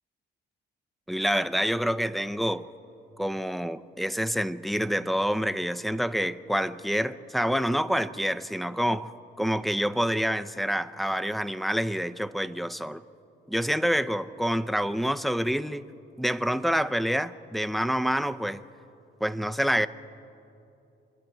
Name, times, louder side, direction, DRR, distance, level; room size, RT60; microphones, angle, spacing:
voice 1, 1.1-2.7 3.2-9.1 9.4-13.0 13.5-15.9 16.2-18.6 19.2-19.9, equal, ahead, 0.6 m, -27 dB
26.0 x 11.5 x 9.2 m
cardioid pair, 90°, 20 cm